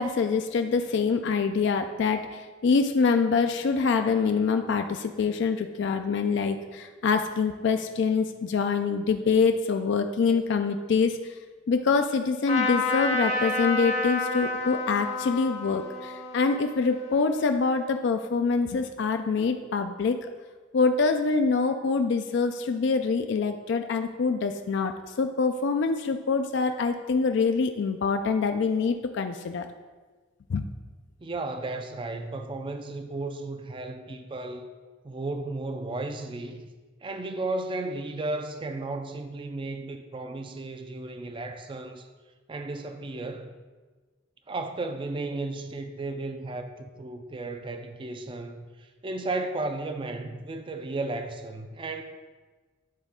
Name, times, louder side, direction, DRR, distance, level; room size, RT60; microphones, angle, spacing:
voice 1, 0.0-11.4 11.7-20.3 20.7-24.9 25.2-29.7 30.5-30.7, left 4 dB, 60° left, 6 dB, 0.3 m, -25 dB
Trumpet, 12.5-18.0, left 2 dB, 35° left, 0.7 m, -30 dB
voice 2, 31.2-34.7 35.0-36.6 37.0-42.1 42.5-43.5 44.5-52.0, right 2 dB, 25° right, 7 dB, 0.4 m, -34 dB
10.5 x 4.1 x 3.6 m, 1.4 s
head